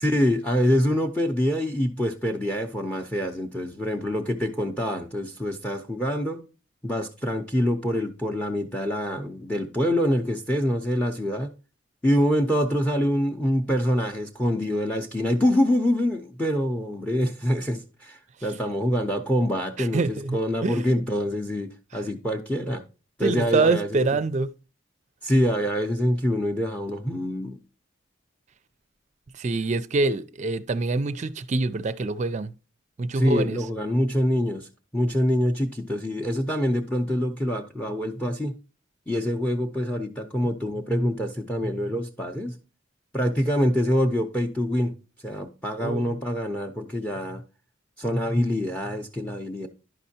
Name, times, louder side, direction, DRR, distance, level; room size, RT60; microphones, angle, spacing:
voice 1, 0.0-6.4 6.8-11.5 12.0-22.8 23.2-24.2 25.2-27.6 33.1-38.5 39.1-42.5 43.1-44.9 45.2-47.4 48.0-49.7, equal, 5° left, 0.6 m, -25 dB
voice 2, 19.8-20.9 23.2-24.5 29.4-32.5 33.0-33.6 45.8-46.2, right 3 dB, 35° right, 0.4 m, -25 dB
11.0 x 5.4 x 2.8 m
head